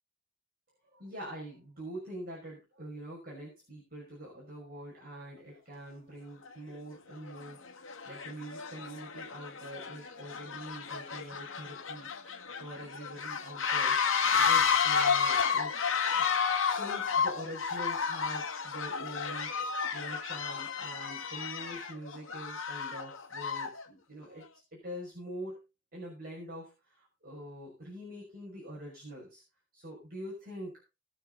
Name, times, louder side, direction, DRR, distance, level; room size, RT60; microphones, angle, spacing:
voice 1, 0.9-7.6 8.0-14.0 14.4-15.7 16.6-24.4 24.7-25.6 25.9-29.4 29.7-30.7, right 1 dB, 50° right, -4 dB, 6.0 m, -44 dB
sound 1, 6.5-6.6 7.3-7.5 7.8-23.8, left 6 dB, 75° left, 2.0 m, -31 dB
20.0 x 6.9 x 3.9 m, 0.28 s
head